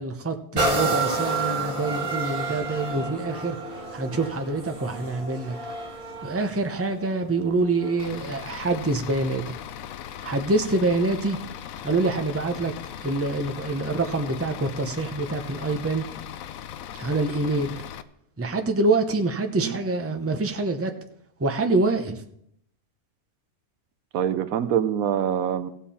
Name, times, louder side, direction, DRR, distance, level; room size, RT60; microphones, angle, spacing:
voice 1, 0.0-3.6 3.9-5.6 6.2-9.5 10.2-11.4 11.8-12.7 13.0-16.1 17.0-17.8 18.4-20.9 21.4-22.2, right 2 dB, 15° right, 6 dB, 0.5 m, -26 dB
sound 1, 0.6-8.2 8.8-8.9, right 3 dB, 40° right, 1.7 m, -30 dB
Bus / Idling, 8.0-18.0, left 10 dB, 75° left, 1.0 m, -38 dB
voice 2, 24.1-25.7, right 9 dB, 75° right, 10 dB, 1.2 m, -24 dB
16.0 x 7.4 x 4.3 m, 0.72 s
omnidirectional pair, 1.5 m